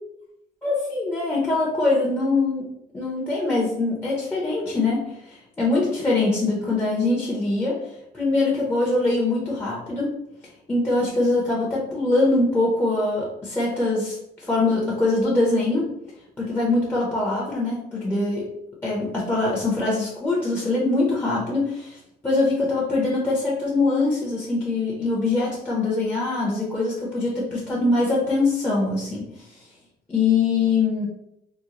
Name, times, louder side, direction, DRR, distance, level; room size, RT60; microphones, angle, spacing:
voice 1, 0.6-2.7 2.9-7.8 8.1-10.2 10.7-15.9 16.4-18.5 18.8-29.4 30.1-31.1, left 3 dB, 10° left, -5 dB, 0.8 m, -23 dB
3.0 x 2.2 x 3.7 m, 0.81 s
cardioid pair, 110°, 17 cm